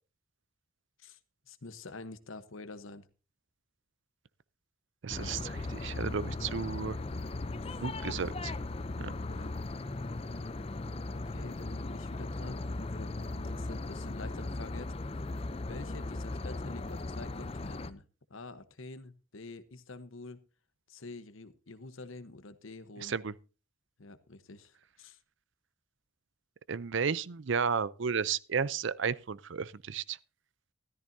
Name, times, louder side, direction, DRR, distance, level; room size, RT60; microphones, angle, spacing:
voice 1, 1.5-3.1 7.6-7.8 9.3-9.5 11.1-14.9 15.6-18.0 18.3-20.4 20.9-23.1 24.0-25.2, left 3 dB, 70° left, 1.0 m, -47 dB
voice 2, 5.0-7.0 7.8-8.5 9.0-9.1 23.0-23.3 26.7-30.2, right 6 dB, 60° right, 0.5 m, -33 dB
sound 1, 5.1-17.9, left 2 dB, 30° left, 0.5 m, -37 dB
13.5 x 13.5 x 2.7 m
head